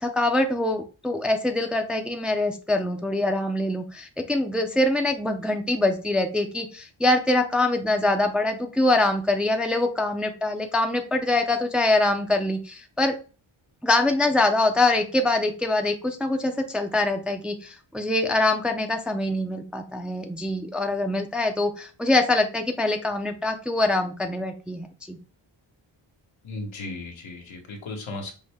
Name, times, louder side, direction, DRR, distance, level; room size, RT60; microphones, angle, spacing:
voice 1, 0.0-13.1 13.8-25.2, left 2 dB, ahead, 5 dB, 0.4 m, -24 dB
voice 2, 26.4-28.3, left 2 dB, 85° left, 2 dB, 1.2 m, -36 dB
5.4 x 2.1 x 3.4 m, 0.35 s
wide cardioid pair, 105°, 46 cm